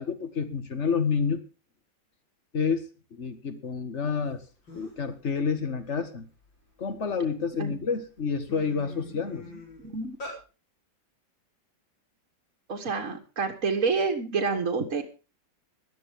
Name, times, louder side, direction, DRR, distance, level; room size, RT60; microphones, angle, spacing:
voice 1, 0.0-1.4 2.5-2.8 3.1-4.4 4.7-6.3 6.8-9.4, left 5 dB, 40° left, 9 dB, 1.9 m, -29 dB
sound 1, 4.3-4.4 4.7-5.1 5.6-7.1 7.7-7.9 8.2-10.4, left 2 dB, 75° left, 5.4 m, -44 dB
voice 2, 9.1-10.2 12.7-15.1, right 4 dB, 45° right, 2 dB, 1.9 m, -29 dB
17.5 x 12.5 x 3.6 m, 0.33 s
omnidirectional pair, 2.0 m